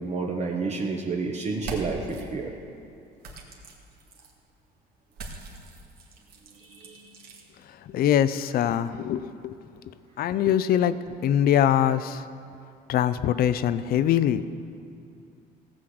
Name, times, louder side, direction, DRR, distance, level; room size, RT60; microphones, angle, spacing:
voice 1, 0.0-2.5 6.5-7.2, right 4 dB, 40° right, 0 dB, 1.3 m, -30 dB
sound 1, 1.5-2.2 3.2-4.3 5.1-7.4, right 2 dB, 70° right, 2.1 m, -41 dB
voice 2, 7.7-9.6 9.8-12.3 12.9-14.5, left 10 dB, 65° left, 14 dB, 0.6 m, -23 dB
16.5 x 6.3 x 7.8 m, 2.5 s
cardioid pair, 110°, 17 cm